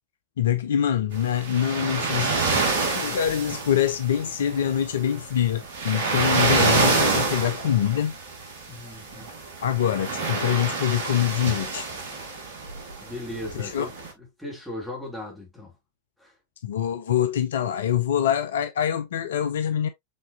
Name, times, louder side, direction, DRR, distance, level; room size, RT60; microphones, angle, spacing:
voice 1, 0.4-2.7 2.9-8.2 9.6-11.9 13.5-13.9 16.6-19.9, left 10 dB, 60° left, 0.5 m, -25 dB
sound 1, 1.2-14.1, right 3 dB, 60° right, 1.3 m, -27 dB
voice 2, 8.7-9.3 13.0-15.7 16.2-16.3, left 1 dB, ahead, 2.3 m, -37 dB
5.3 x 3.7 x 2.3 m
figure-of-eight pair, 90°, 0 cm